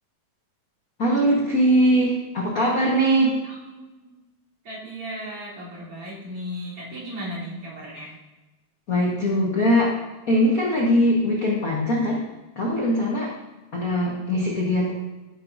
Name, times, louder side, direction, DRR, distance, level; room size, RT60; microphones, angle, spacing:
voice 1, 1.0-3.4 8.9-9.9 10.3-12.2 12.6-13.3 13.7-14.9, equal, 45° left, -4 dB, 1.1 m, -21 dB
voice 2, 3.4-4.2 4.6-8.2, equal, 45° right, -6 dB, 4.3 m, -36 dB
15.0 x 7.5 x 2.7 m, 1.1 s
omnidirectional pair, 3.5 m